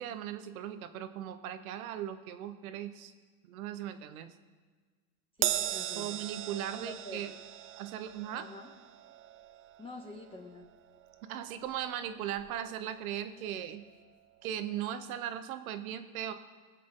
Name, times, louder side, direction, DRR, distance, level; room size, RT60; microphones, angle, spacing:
voice 1, 0.0-3.1 3.4-4.3 6.0-7.3 7.8-8.5 11.3-13.8 14.4-16.3, right 10 dB, 90° right, 10 dB, 1.1 m, -38 dB
voice 2, 5.4-6.2 6.7-7.2 8.3-8.7 9.8-10.7, left 2 dB, 15° left, 0 dB, 1.6 m, -47 dB
Crash cymbal, 5.4-12.0 12.4-12.6 13.6-13.7, right 12 dB, 30° right, 0.4 m, -38 dB
21.5 x 7.6 x 3.8 m, 1.4 s
supercardioid pair, 105°, 41 cm